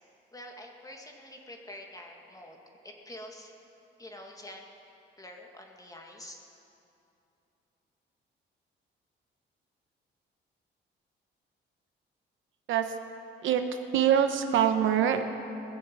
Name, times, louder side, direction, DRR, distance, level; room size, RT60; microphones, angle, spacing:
voice 1, 0.3-2.6 2.8-3.5 4.0-4.7 5.2-6.4, left 1 dB, 15° left, 1 dB, 2.1 m, -46 dB
voice 2, 13.9-15.2, right 9 dB, 75° right, 7 dB, 1.0 m, -24 dB
21.0 x 7.4 x 7.8 m, 2.8 s
cardioid pair, 90°, 20 cm